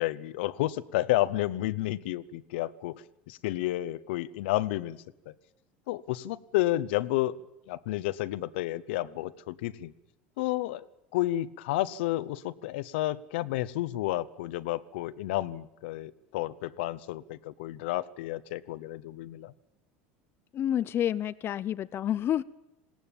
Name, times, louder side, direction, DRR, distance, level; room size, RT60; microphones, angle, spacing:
voice 1, 0.0-5.0 5.3-5.4 5.9-7.3 7.7-9.9 10.4-10.8 11.1-19.5, left 16 dB, 75° left, 15 dB, 0.8 m, -31 dB
voice 2, 20.5-22.4, left 10 dB, 40° left, 15 dB, 0.7 m, -29 dB
20.0 x 17.5 x 9.0 m, 0.91 s
hypercardioid pair, 90°, 6 cm